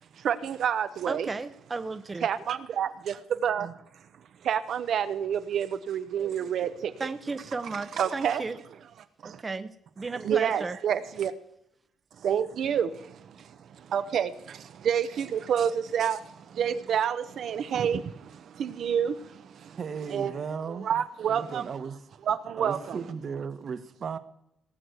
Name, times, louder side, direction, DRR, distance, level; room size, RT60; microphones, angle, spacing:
voice 1, 0.2-1.3 2.2-3.7 4.4-7.1 8.0-8.4 9.2-9.4 10.2-11.3 12.2-19.8 20.1-20.3 20.8-21.7 22.3-23.0, right 8 dB, 65° right, 0.9 m, -29 dB
voice 2, 1.1-2.3 7.0-8.6 9.2-9.7 10.0-10.8, right 3 dB, 25° right, 0.9 m, -34 dB
voice 3, 19.7-20.9 21.3-22.0 22.6-24.2, right 6 dB, 50° right, 1.3 m, -35 dB
18.5 x 6.2 x 8.2 m
cardioid pair, 90°, 0 cm